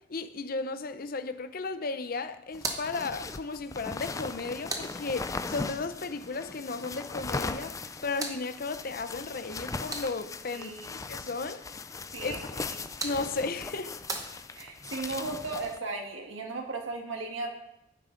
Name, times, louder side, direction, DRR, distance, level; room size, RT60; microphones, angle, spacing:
voice 1, 0.1-7.7 8.0-10.7 11.1-11.6 12.2-12.4 13.0-13.9, left 3 dB, 50° left, 0.7 m, -34 dB
sound 1, 2.5-15.8, left 3 dB, 15° left, 0.4 m, -39 dB
sound 2, 2.5-5.6 7.6-10.5 12.5-15.0, right 3 dB, 20° right, 0.9 m, -42 dB
voice 2, 10.5-11.0 12.1-12.7 14.5-17.5, right 3 dB, 90° right, 1.7 m, -36 dB
11.0 x 9.4 x 3.9 m
head